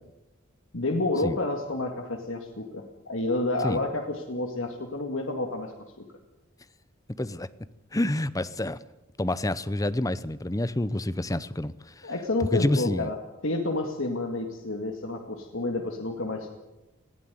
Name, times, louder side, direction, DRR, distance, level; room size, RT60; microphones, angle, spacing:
voice 1, 0.7-5.7 6.0-6.1 12.0-13.2 13.4-16.5, left 2 dB, 65° left, 2.1 m, -29 dB
voice 2, 7.2-7.5 7.9-8.8 9.2-12.1 12.4-13.1, left 1 dB, 15° left, 0.7 m, -28 dB
20.0 x 15.0 x 9.3 m
head